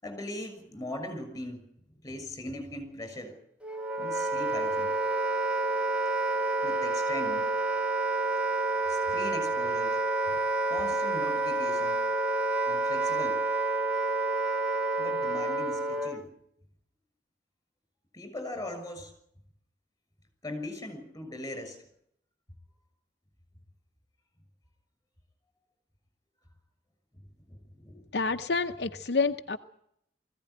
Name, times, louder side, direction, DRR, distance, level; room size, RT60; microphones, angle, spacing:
voice 1, 0.0-3.4 4.0-4.9 6.6-7.5 8.9-10.0 10.2-12.1 12.7-13.4 15.0-16.3 18.1-19.1 20.4-21.8 27.1-28.0, left 1 dB, 20° left, 7 dB, 6.4 m, -40 dB
Wind instrument woodwind instrument, 3.6-16.3, right 2 dB, 5° right, 0.9 m, -29 dB
voice 2, 28.1-29.6, left 4 dB, 70° left, 6 dB, 0.8 m, -28 dB
20.0 x 16.0 x 10.0 m, 0.74 s
head